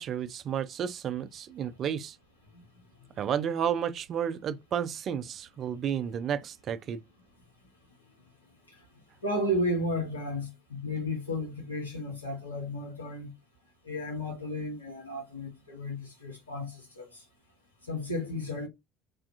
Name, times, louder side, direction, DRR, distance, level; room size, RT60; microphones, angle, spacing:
voice 1, 0.0-2.2 3.2-7.0, right 8 dB, 45° right, 0.3 m, -32 dB
voice 2, 9.2-13.3 13.8-17.2 17.8-18.7, left 1 dB, 85° left, 0.8 m, -33 dB
2.4 x 2.3 x 2.5 m
figure-of-eight pair, 60°, 0 cm